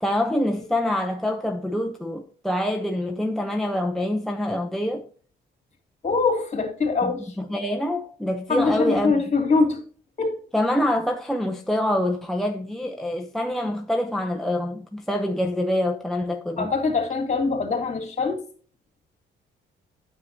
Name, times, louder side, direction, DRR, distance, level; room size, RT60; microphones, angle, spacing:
voice 1, 0.0-5.1 7.0-9.1 10.5-16.7, left 1 dB, ahead, 0.7 m, -25 dB
voice 2, 6.0-7.4 8.5-9.8 10.2-10.4 16.6-18.4, left 4 dB, 35° left, 2.8 m, -23 dB
9.2 x 7.8 x 2.8 m
cardioid pair, 90°, 20 cm